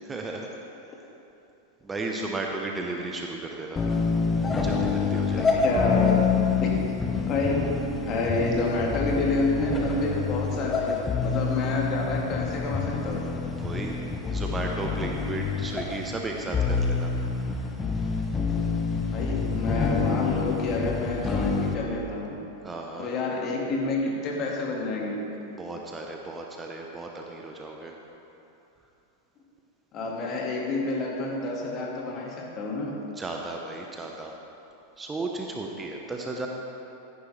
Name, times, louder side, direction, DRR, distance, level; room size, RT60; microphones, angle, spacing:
voice 1, 0.0-0.5 1.8-3.8 4.6-5.6 13.6-14.0 14.3-17.1 21.3-21.4 22.6-23.1 25.6-27.9 33.2-34.3 35.0-36.5, right 2 dB, 15° right, 1 dB, 1.0 m, -34 dB
sound 1, 3.8-21.7, left 5 dB, 15° left, 1.1 m, -27 dB
voice 2, 5.4-6.8 7.1-7.8 8.0-13.3 19.1-22.4 23.0-25.4 29.9-32.9, left 2 dB, 35° left, -1 dB, 2.1 m, -28 dB
14.5 x 10.0 x 3.4 m, 2.8 s
figure-of-eight pair, 90°, 0 cm